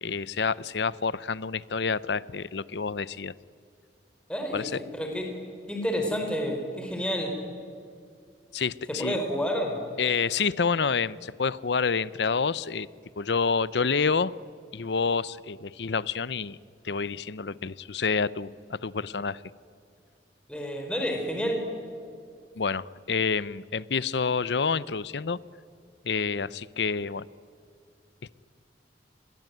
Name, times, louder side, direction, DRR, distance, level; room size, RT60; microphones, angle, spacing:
voice 1, 0.0-3.3 4.5-4.7 8.5-9.2 10.0-12.9 13.2-14.4 14.7-16.6 16.8-19.4 22.6-25.4 26.0-27.3, left 5 dB, 75° left, 19 dB, 0.7 m, -28 dB
voice 2, 4.3-5.3 5.7-7.3 8.9-9.8 20.5-21.6, equal, 5° left, 2 dB, 4.1 m, -29 dB
29.0 x 22.0 x 9.2 m, 2.3 s
head